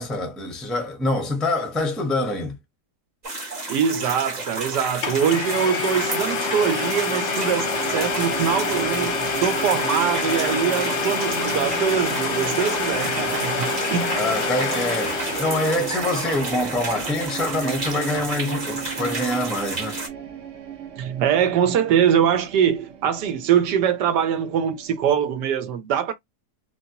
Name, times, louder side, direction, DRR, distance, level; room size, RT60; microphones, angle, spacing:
voice 1, 0.0-2.6 14.1-20.0, left 1 dB, ahead, 0.4 m, -25 dB
sound 1, 3.2-20.1, right 2 dB, 30° right, 1.0 m, -32 dB
voice 2, 3.7-9.1 9.4-14.1 21.0-26.1, right 8 dB, 80° right, 1.3 m, -23 dB
Domestic sounds home sounds, 4.5-4.6 5.0-16.1, left 4 dB, 55° left, 0.8 m, -26 dB
sound 2, 7.0-25.2, right 7 dB, 55° right, 0.9 m, -36 dB
3.1 x 2.8 x 2.8 m
omnidirectional pair, 1.8 m